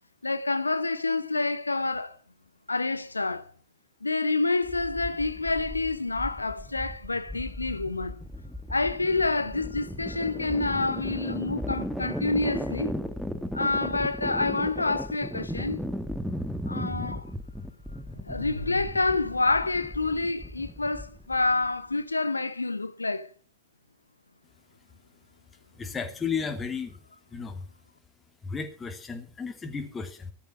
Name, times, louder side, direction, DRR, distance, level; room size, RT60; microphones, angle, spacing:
voice 1, 0.2-2.2 2.7-3.5 4.0-8.2 8.7-12.9 13.5-15.8 16.7-17.3 18.2-23.3, left 3 dB, 80° left, 0.8 m, -28 dB
sound 1, 4.6-21.7, equal, ahead, 1.6 m, -36 dB
voice 2, 25.7-27.0 27.3-27.7 28.4-30.3, left 5 dB, 20° left, 3.0 m, -34 dB
15.5 x 12.5 x 6.0 m
figure-of-eight pair, 90°, 0 cm